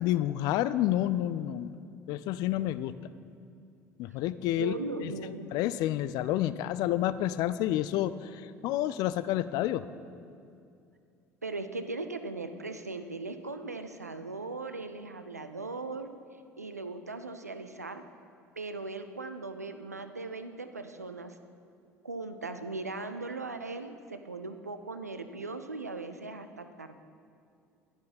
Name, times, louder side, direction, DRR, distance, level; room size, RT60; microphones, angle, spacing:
voice 1, 0.0-1.8 2.1-2.9 4.0-4.7 5.0-5.1 5.5-9.8, left 13 dB, 50° left, 15 dB, 0.4 m, -29 dB
voice 2, 4.5-5.5 11.4-16.1 16.6-18.0 18.6-21.4 22.0-27.0, right 3 dB, 85° right, 8 dB, 0.5 m, -39 dB
10.5 x 10.5 x 4.2 m, 2.5 s
figure-of-eight pair, 60°, 8 cm